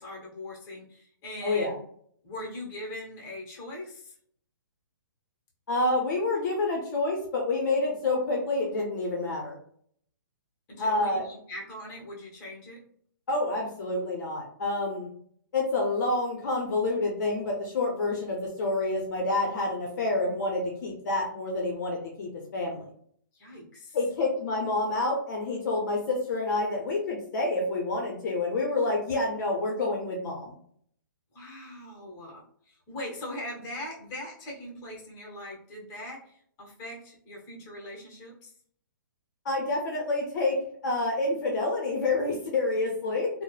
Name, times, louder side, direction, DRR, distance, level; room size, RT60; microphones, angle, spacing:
voice 1, 0.0-1.8 2.2-4.1 10.7-12.8 23.3-24.0 31.3-38.5, left 1 dB, 25° left, -2 dB, 1.0 m, -41 dB
voice 2, 1.4-1.7 5.7-9.6 10.8-11.3 13.3-15.1 15.5-22.9 23.9-30.6 39.4-40.6 40.8-43.3, left 2 dB, 55° left, 0 dB, 0.7 m, -28 dB
3.0 x 2.0 x 2.3 m, 0.62 s
hypercardioid pair, 140°, 12 cm